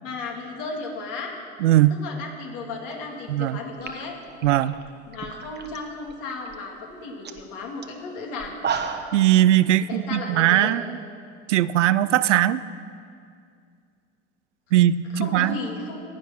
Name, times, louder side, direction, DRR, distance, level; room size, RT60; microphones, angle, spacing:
voice 1, 0.0-1.3 1.9-4.2 5.1-8.5 9.9-10.8 15.1-16.0, left 3 dB, 60° left, 1 dB, 2.7 m, -34 dB
voice 2, 1.6-2.0 3.3-3.6 4.4-4.8 9.1-11.0 11.5-12.6 14.7-15.6, right 13 dB, 80° right, 17 dB, 0.6 m, -19 dB
sound 1, 3.4-3.5 3.8-5.8 6.1-6.6 6.9-7.0 7.2-7.4 7.8-7.9 8.4-9.2, right 6 dB, 30° right, 1.3 m, -32 dB
15.5 x 11.0 x 5.9 m, 2.3 s
hypercardioid pair, 70°, 36 cm